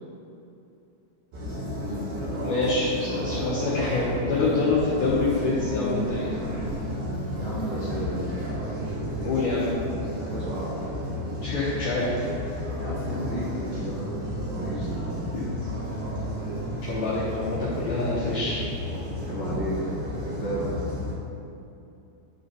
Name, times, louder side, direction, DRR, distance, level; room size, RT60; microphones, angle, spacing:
sound 1, 1.3-21.1, equal, 60° right, 3.1 m, -32 dB
voice 1, 2.4-6.4 9.2-9.7 11.4-12.1 15.3-15.4 15.7-15.8 16.9-18.6, left 3 dB, 75° left, -10 dB, 1.9 m, -26 dB
voice 2, 7.3-8.3 10.1-10.8 12.8-15.2 19.3-19.8 20.3-20.8, right 1 dB, 75° right, -9 dB, 1.5 m, -33 dB
11.0 x 3.9 x 4.0 m, 2.7 s
omnidirectional pair, 5.2 m